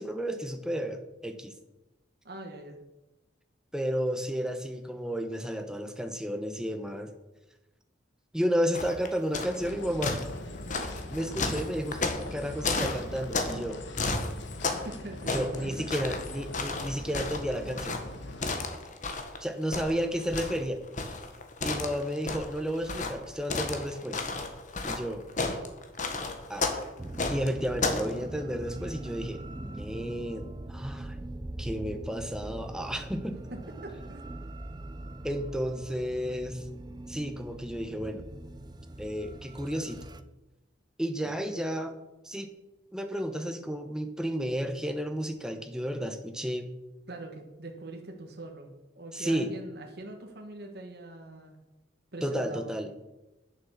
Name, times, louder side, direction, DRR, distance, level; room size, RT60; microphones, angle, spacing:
voice 1, 0.0-1.5 3.7-7.1 8.3-10.2 11.1-13.8 15.3-18.0 19.4-20.8 21.6-24.2 24.8-25.2 26.5-26.7 27.3-31.2 31.6-33.4 35.2-36.6 37.1-38.2 39.0-40.0 41.0-42.0 42.2-42.5 42.9-46.7 49.1-49.5 52.2-52.9, equal, 5° right, 6 dB, 0.9 m, -32 dB
voice 2, 2.2-2.8 14.6-15.9 33.5-34.4 47.1-51.6 52.1-52.7, right 2 dB, 55° right, 3 dB, 1.5 m, -43 dB
sound 1, 8.7-9.7 10.0-13.6 14.0-14.9 15.2-19.4 19.7-28.1, left 3 dB, 40° left, 1.3 m, -32 dB
sound 2, 9.6-18.4, left 1 dB, 70° left, 1.3 m, -42 dB
sound 3, 27.0-40.2, right 1 dB, 20° right, 0.5 m, -41 dB
9.8 x 7.6 x 7.0 m, 1.0 s
head